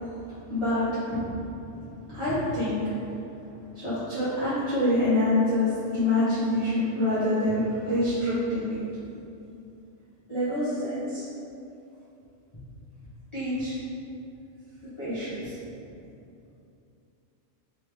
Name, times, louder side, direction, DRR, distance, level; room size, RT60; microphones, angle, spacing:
voice 1, 0.5-1.2 2.1-2.8 3.4-8.8 10.3-11.2 13.3-13.7 15.0-15.5, left 1 dB, 25° left, -15 dB, 1.0 m, -26 dB
3.6 x 3.1 x 3.2 m, 2.7 s
omnidirectional pair, 1.3 m